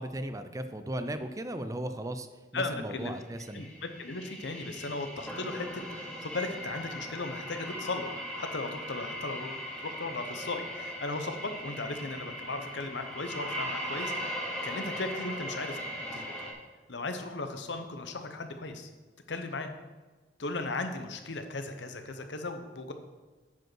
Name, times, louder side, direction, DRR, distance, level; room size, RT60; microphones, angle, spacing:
voice 1, 0.0-2.3 2.5-3.7, right 1 dB, 20° right, 9 dB, 0.5 m, -36 dB
voice 2, 2.5-3.2 3.5-5.7 6.0-9.6 9.8-14.4 14.6-15.8 16.1-16.3 16.9-18.9 19.3-19.7 20.4-22.9, left 3 dB, 90° left, 7 dB, 1.0 m, -36 dB
sound 1, 3.4-16.5, equal, 5° left, 2.3 m, -39 dB
9.3 x 5.3 x 6.2 m, 1.3 s
head